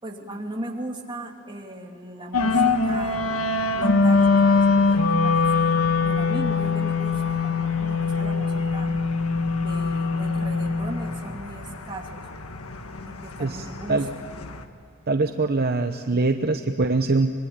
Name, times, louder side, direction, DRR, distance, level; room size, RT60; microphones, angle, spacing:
voice 1, 0.0-8.9 9.5-12.2 13.0-14.0, right 1 dB, 20° right, 1 dB, 2.8 m, -37 dB
sound 1, 2.3-14.6, left 4 dB, 85° left, 1.6 m, -23 dB
voice 2, 15.1-17.4, right 3 dB, 45° right, 7 dB, 0.8 m, -23 dB
26.0 x 22.5 x 8.8 m, 2.5 s
head